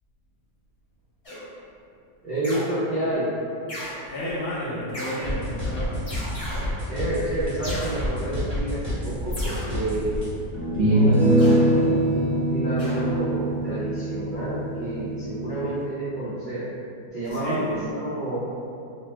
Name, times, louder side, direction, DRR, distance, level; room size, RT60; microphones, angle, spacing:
sound 1, 1.2-1.7 2.4-3.0 3.7-4.0 4.9-5.5 6.1-6.9 7.6-8.6 9.3-10.2 11.4-12.3 12.8-13.7, equal, 35° left, 0.6 m, -36 dB
voice 1, 2.2-3.3 6.8-10.3 10.7-16.7 17.1-18.4, right 1 dB, 75° right, -13 dB, 0.4 m, -29 dB
voice 2, 4.1-6.0 17.3-17.7, equal, 65° left, -7 dB, 1.2 m, -31 dB
sound 2, 5.2-10.3, left 1 dB, 25° right, 0.6 m, -29 dB
sound 3, 10.5-15.8, right 1 dB, 55° right, 1.0 m, -23 dB
2.8 x 2.1 x 3.3 m, 2.5 s
omnidirectional pair, 1.8 m